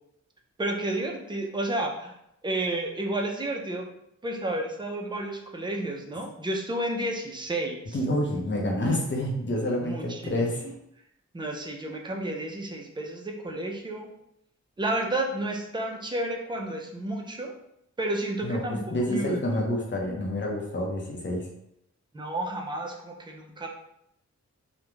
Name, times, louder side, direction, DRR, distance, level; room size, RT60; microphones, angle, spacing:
voice 1, 0.6-2.2 2.4-3.9 4.2-8.0 9.8-10.3 10.6-10.7 11.3-14.1 14.8-17.5 18.0-19.4 22.1-23.7, right 1 dB, 15° right, 1 dB, 0.4 m, -31 dB
voice 2, 7.9-10.6 18.4-21.5, left 1 dB, 40° left, -1 dB, 0.6 m, -28 dB
2.3 x 2.1 x 3.0 m, 0.77 s
wide cardioid pair, 125°, 29 cm